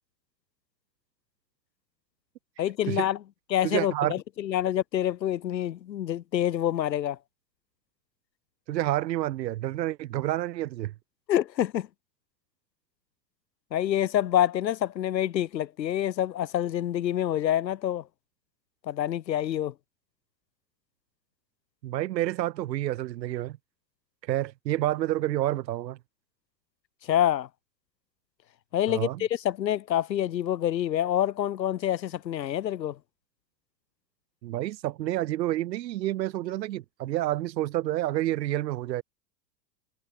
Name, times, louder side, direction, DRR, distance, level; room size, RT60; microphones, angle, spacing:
voice 1, 2.6-3.2 3.5-7.2 11.3-11.9 13.7-18.0 18.8-19.7 27.1-27.5 28.7-33.0, left 11 dB, 90° left, 3.9 m, -27 dB
voice 2, 3.6-4.1 8.7-10.9 21.8-23.6 24.3-26.0 28.9-29.3 34.4-39.0, right 14 dB, 80° right, 2.4 m, -29 dB
supercardioid pair, 120°, 50 cm